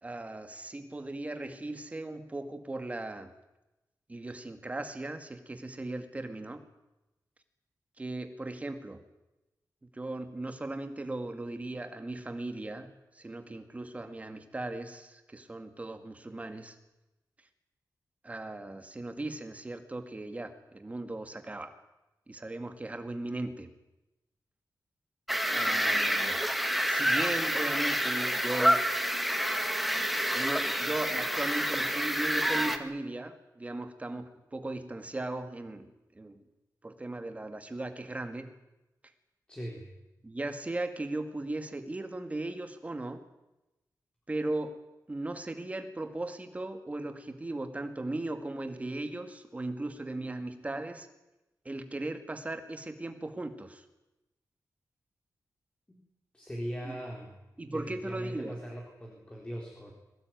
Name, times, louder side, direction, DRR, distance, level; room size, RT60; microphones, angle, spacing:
voice 1, 0.0-3.3 4.1-6.6 8.0-9.0 9.9-16.8 18.2-21.8 22.3-23.7 25.5-26.5 26.9-28.8 30.3-36.4 36.8-38.5 40.2-43.2 44.3-44.8 45.1-51.1 51.6-53.8 56.9-57.0 57.6-58.6, right 2 dB, 20° right, 7 dB, 2.1 m, -37 dB
sound 1, 25.3-32.8, equal, ahead, 1.7 m, -28 dB
voice 2, 39.5-39.9 55.9-56.0 56.3-57.3 57.7-59.9, equal, 15° left, -1 dB, 4.1 m, -40 dB
22.5 x 18.5 x 9.4 m, 0.99 s
wide cardioid pair, 170°, 7 cm